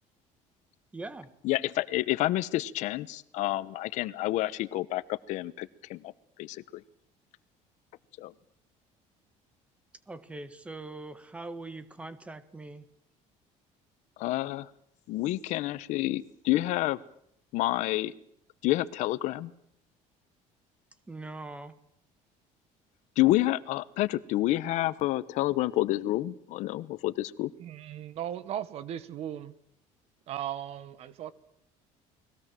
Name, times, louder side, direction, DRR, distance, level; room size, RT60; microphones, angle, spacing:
voice 1, 0.9-1.3 10.1-12.8 21.1-21.7, right 2 dB, 10° right, 13 dB, 1.5 m, -42 dB
voice 2, 1.4-6.1 6.4-6.8 8.2-8.3 14.2-14.7 15.1-17.0 17.5-18.1 18.6-19.5 23.2-27.5, left 16 dB, 60° left, 16 dB, 1.1 m, -29 dB
voice 3, 27.6-29.5 30.3-31.3, right 10 dB, 50° right, 16 dB, 1.5 m, -37 dB
30.0 x 21.0 x 7.7 m, 0.70 s
cardioid pair, 180°, 14 cm